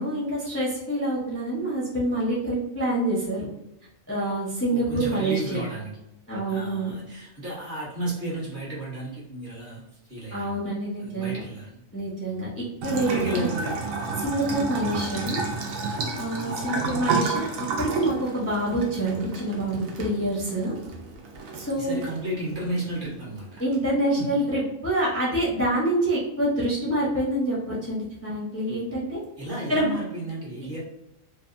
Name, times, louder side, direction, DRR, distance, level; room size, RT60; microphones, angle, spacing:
voice 1, 0.0-3.5 4.1-5.6 6.3-6.9 10.3-11.4 11.9-13.5 14.2-15.4 16.2-20.7 21.5-22.0 23.6-29.2 29.7-29.9, right 1 dB, 15° left, -7 dB, 0.5 m, -26 dB
voice 2, 4.7-5.9 6.5-10.6 11.0-11.8 13.0-13.8 16.4-16.7 17.0-17.3 21.8-23.6 24.2-24.4 29.4-30.8, right 1 dB, 45° right, -5 dB, 0.9 m, -33 dB
Bathtub (filling or washing) / Trickle dribble, 12.8-23.8, right 4 dB, 90° right, 1.0 m, -32 dB
2.7 x 2.2 x 2.5 m, 0.85 s
omnidirectional pair, 1.4 m